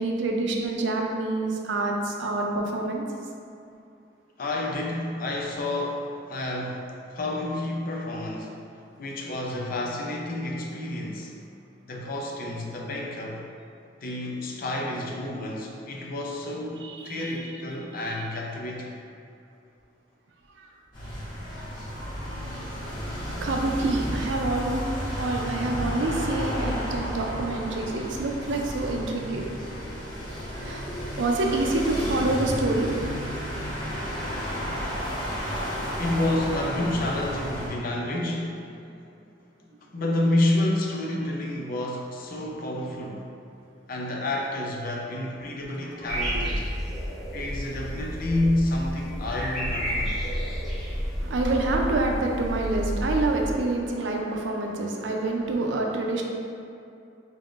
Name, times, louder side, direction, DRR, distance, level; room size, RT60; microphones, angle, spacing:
voice 1, 0.0-3.0 16.8-17.6 18.0-18.1 20.6-20.7 23.4-24.9 25.2-29.5 30.6-30.8 31.2-32.9 45.7-46.4 51.2-56.2, right 2 dB, 90° right, 1 dB, 0.5 m, -27 dB
voice 2, 4.4-8.6 9.0-11.3 11.8-13.4 14.0-18.9 21.8-21.9 25.6-26.1 36.0-39.1 39.9-43.3 43.9-46.7 47.3-50.2, left 1 dB, 50° left, -1 dB, 0.5 m, -29 dB
sound 1, 20.9-37.7, equal, 25° left, 1.4 m, -32 dB
sound 2, 46.1-53.5, equal, ahead, 0.9 m, -30 dB
3.6 x 3.5 x 2.4 m, 2.6 s
head